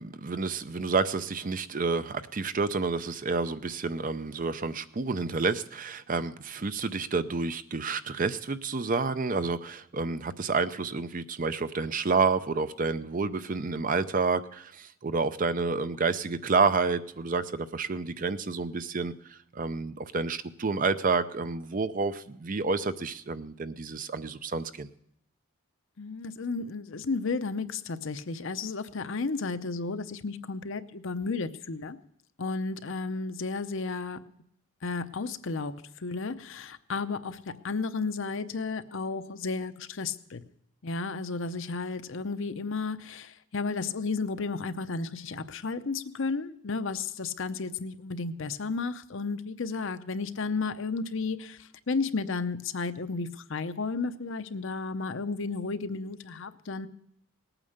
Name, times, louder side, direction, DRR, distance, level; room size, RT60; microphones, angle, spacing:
voice 1, 0.0-24.9, right 4 dB, 35° right, 12 dB, 0.5 m, -29 dB
voice 2, 26.0-32.0 32.4-34.2 34.8-40.4 40.8-56.9, left 4 dB, 60° left, 11 dB, 0.7 m, -33 dB
19.0 x 9.0 x 6.6 m, 0.72 s
head